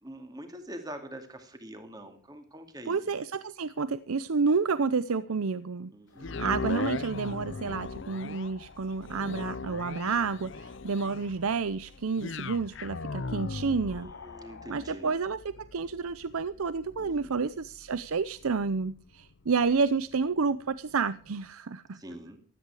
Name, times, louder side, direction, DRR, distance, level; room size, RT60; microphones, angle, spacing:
voice 1, 0.0-3.0 5.9-6.5 13.6-15.1 17.0-17.6 21.9-22.4, equal, 20° right, 6 dB, 2.3 m, -45 dB
voice 2, 2.9-5.9 6.4-14.1 14.7-22.0, right 4 dB, 85° right, 15 dB, 0.6 m, -30 dB
sound 1, 6.2-20.4 20.9-21.0, left 4 dB, 60° left, 0.6 m, -39 dB
16.0 x 13.5 x 4.8 m, 0.40 s
head